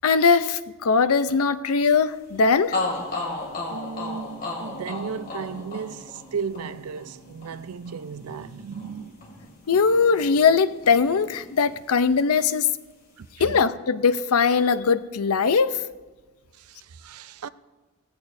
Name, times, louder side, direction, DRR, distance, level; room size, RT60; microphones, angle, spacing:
voice 1, 0.0-2.8 9.7-12.7 13.4-15.8, left 5 dB, 85° left, 0.6 m, -20 dB
sound 1, 2.3-2.4 2.7-10.6 10.8-12.0, left 2 dB, 40° left, 2.4 m, -35 dB
voice 2, 3.7-9.2 13.2-13.6 16.6-17.5, right 6 dB, 85° right, 0.5 m, -35 dB
18.0 x 14.5 x 2.6 m
head